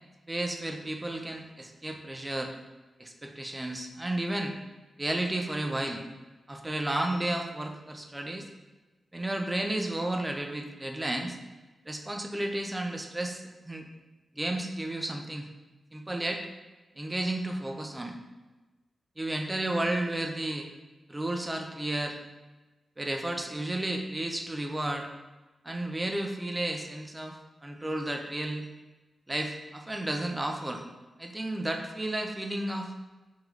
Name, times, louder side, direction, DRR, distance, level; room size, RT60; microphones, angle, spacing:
voice 1, 0.3-2.5 3.0-4.6 5.0-6.0 6.5-8.5 9.1-11.4 11.9-13.9 14.4-15.5 15.9-16.5 17.0-18.2 19.2-20.7 21.1-22.2 23.0-25.1 25.6-28.7 29.3-30.8 31.2-32.9, right 1 dB, 15° right, 3 dB, 0.4 m, -32 dB
3.6 x 3.0 x 3.3 m, 1.2 s
wide cardioid pair, 150°, 0 cm